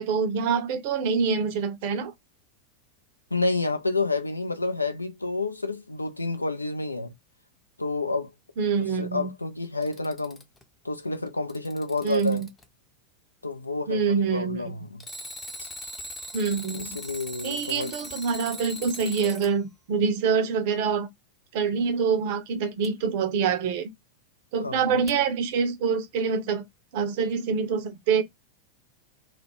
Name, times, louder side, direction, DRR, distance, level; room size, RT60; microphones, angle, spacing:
voice 1, 0.0-2.1 8.6-9.3 12.0-12.5 13.9-14.7 16.3-17.0 17.4-21.1 21.5-23.9 24.5-26.6 26.9-28.2, right 6 dB, 50° right, 0.5 m, -26 dB
voice 2, 3.3-7.1 7.8-8.3 8.9-10.4 10.8-12.4 13.4-15.0 15.6-15.7 16.7-17.9 24.6-25.0, left 3 dB, 80° left, 0.4 m, -29 dB
Alarm, 9.6-10.6 11.3-12.6 15.0-19.5 22.8-22.9 25.1-25.2, equal, 10° left, 0.6 m, -40 dB
2.3 x 2.0 x 3.0 m
figure-of-eight pair, 90°, 0 cm